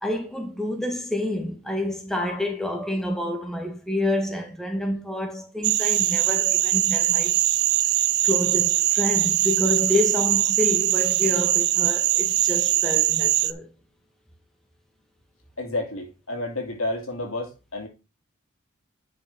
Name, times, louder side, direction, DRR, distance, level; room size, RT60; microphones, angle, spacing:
voice 1, 0.0-7.4 7.8-7.9 8.2-13.7, left 1 dB, ahead, 1.5 m, -28 dB
sound 1, 5.6-13.5, right 15 dB, 55° right, 0.5 m, -22 dB
voice 2, 15.6-17.9, left 2 dB, 85° left, 2.7 m, -30 dB
9.8 x 6.0 x 3.6 m
head